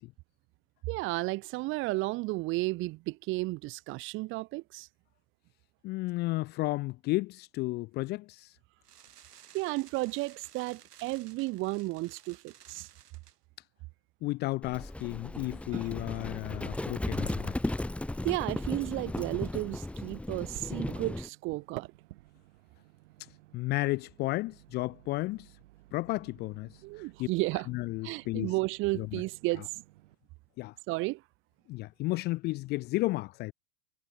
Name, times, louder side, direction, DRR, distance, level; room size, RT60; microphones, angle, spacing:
voice 1, 0.9-4.9 9.5-12.9 18.2-21.9 26.8-27.7 28.0-29.7 30.9-31.2, right 22 dB, 25° right, 1.1 m, -33 dB
voice 2, 5.8-8.5 14.2-17.5 23.5-25.5 25.9-26.7 27.2-27.3 27.7-28.5 29.0-29.1 30.6-30.7 31.7-33.5, left 20 dB, 20° left, 0.8 m, -33 dB
sound 1, 8.8-13.4, right 10 dB, 85° right, 6.2 m, -56 dB
Livestock farm animals working animals, 14.6-21.3, left 1 dB, 5° left, 2.0 m, -35 dB
Microwave oven, 15.7-16.2 16.5-18.7 19.1-30.2, right 18 dB, 55° right, 3.5 m, -53 dB
hypercardioid pair, 150°, 46 cm